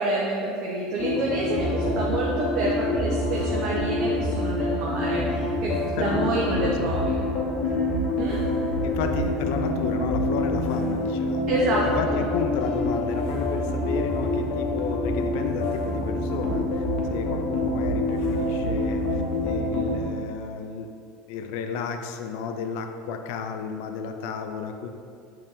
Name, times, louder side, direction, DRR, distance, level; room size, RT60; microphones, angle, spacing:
voice 1, 0.0-7.2 8.2-8.4 11.5-12.2, right 2 dB, 45° right, -4 dB, 0.6 m, -27 dB
sound 1, 1.0-20.0, left 2 dB, 50° left, 0.7 m, -26 dB
voice 2, 6.0-7.0 8.8-11.5 11.8-16.8 17.1-20.9 21.3-24.9, left 6 dB, 70° left, 6 dB, 0.3 m, -32 dB
5.1 x 2.7 x 3.5 m, 2.3 s
supercardioid pair, 140°, 0 cm